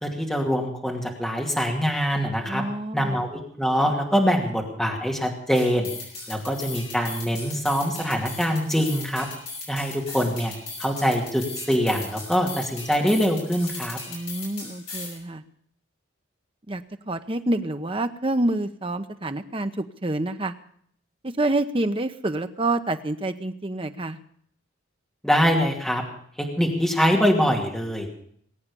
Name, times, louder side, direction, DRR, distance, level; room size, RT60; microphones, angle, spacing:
voice 1, 0.0-2.6 2.9-5.9 6.3-9.3 9.7-10.5 10.8-14.0 25.2-26.0 26.4-28.1, equal, 5° left, 0 dB, 2.5 m, -24 dB
voice 2, 2.4-3.2 14.1-15.4 16.7-20.5 21.2-24.2, right 2 dB, 25° right, 8 dB, 0.9 m, -27 dB
sound 1, 5.5-15.2, left 3 dB, 30° left, 5.1 m, -38 dB
20.5 x 8.6 x 6.9 m, 0.64 s
head